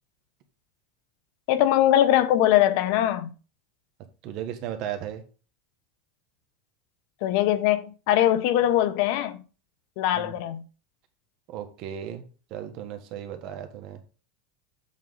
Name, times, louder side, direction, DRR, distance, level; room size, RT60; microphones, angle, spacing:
voice 1, 1.5-3.3 7.2-9.4 10.0-10.6, left 12 dB, 60° left, 0.8 m, -21 dB
voice 2, 4.2-5.2 10.1-10.3 11.5-12.2 12.5-14.0, right 10 dB, 50° right, 1.4 m, -35 dB
7.4 x 3.7 x 5.5 m
supercardioid pair, 140°, 0 cm